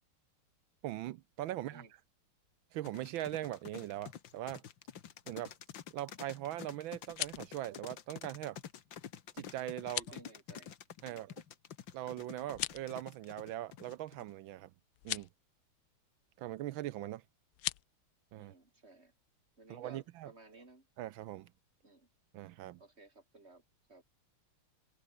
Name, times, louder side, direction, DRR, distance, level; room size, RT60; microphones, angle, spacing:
voice 1, 0.8-1.8 2.7-4.6 5.3-5.5 5.9-8.6 9.3-10.0 11.0-11.3 11.9-14.7 15.0-15.3 16.4-17.2 18.3-18.5 19.7-20.3 21.0-21.5 22.3-22.8, right 14 dB, 75° right, 1.3 m, -41 dB
voice 2, 1.5-1.9 9.8-10.7 18.4-19.1 19.6-20.9 21.8-22.1 22.8-23.6 23.9-24.0, right 2 dB, 30° right, 5.2 m, -57 dB
sound 1, 2.8-14.3, left 9 dB, 60° left, 2.0 m, -49 dB
sound 2, 6.9-7.5 9.8-10.2 12.5-12.9 14.9-15.3 17.5-17.8, left 16 dB, 80° left, 1.5 m, -38 dB
open air
omnidirectional pair, 2.4 m